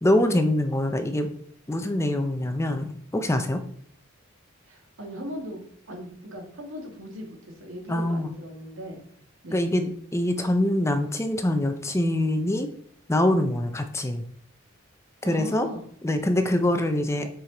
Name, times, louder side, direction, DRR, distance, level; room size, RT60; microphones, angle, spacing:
voice 1, 0.0-1.3 1.7-3.6 7.9-8.3 9.5-12.7 13.1-14.3 15.2-15.7 16.0-17.3, left 1 dB, 15° left, 7 dB, 0.6 m, -24 dB
voice 2, 4.7-9.0 9.4-9.7 15.2-15.9, equal, 85° right, 2 dB, 1.8 m, -38 dB
7.2 x 4.9 x 3.8 m, 0.63 s
head